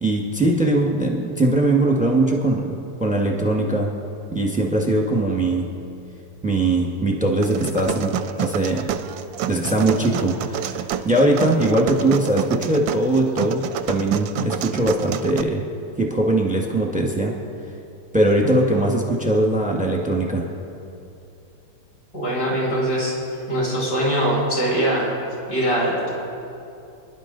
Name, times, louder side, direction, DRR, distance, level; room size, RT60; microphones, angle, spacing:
voice 1, 0.0-3.9 4.3-5.7 6.4-8.1 8.4-8.9 9.5-13.6 13.9-15.6 16.0-17.3 18.1-20.5, right 1 dB, 5° right, 0 dB, 1.1 m, -21 dB
sound 1, 7.4-15.4, right 10 dB, 75° right, 1.2 m, -28 dB
voice 2, 22.1-23.2 23.5-25.1 25.5-26.1, right 1 dB, 45° left, -5 dB, 5.2 m, -22 dB
26.0 x 11.0 x 3.9 m, 2.7 s
omnidirectional pair, 2.4 m